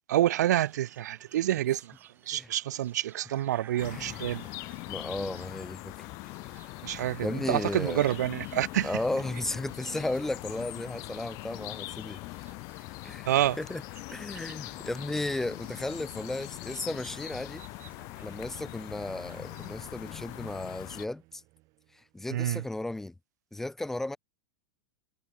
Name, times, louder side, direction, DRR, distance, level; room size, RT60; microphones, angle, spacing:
voice 1, 0.1-1.9 2.3-4.4 6.8-8.9 13.3-13.6 22.3-22.6, right 13 dB, 90° right, 0.4 m, -28 dB
sound 1, 0.6-20.5, right 9 dB, 20° right, 2.6 m, -57 dB
sound 2, 3.8-21.1, left 27 dB, 40° left, 1.4 m, -42 dB
voice 2, 3.9-4.2 4.9-6.1 7.2-8.1 8.8-12.2 13.0-13.3 13.6-13.8 14.1-17.6 18.2-21.4 21.9-23.1 23.5-24.2, left 2 dB, 5° left, 0.3 m, -34 dB
sound 3, 16.9-22.6, right 23 dB, 40° right, 6.6 m, -60 dB
supercardioid pair, 155°, 9 cm